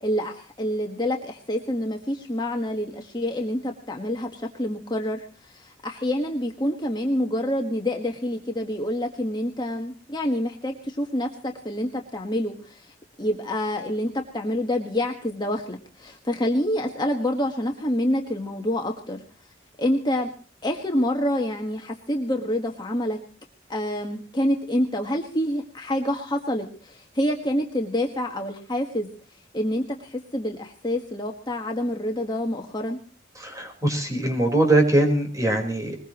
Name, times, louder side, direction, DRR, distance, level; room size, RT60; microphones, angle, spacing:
voice 1, 0.0-19.2 19.8-20.3 20.6-23.2 23.7-29.1 29.5-33.0, left 1 dB, 25° left, 2 dB, 1.5 m, -27 dB
voice 2, 33.4-36.0, right 1 dB, 20° right, 3 dB, 4.4 m, -22 dB
21.5 x 20.5 x 3.0 m, 0.36 s
head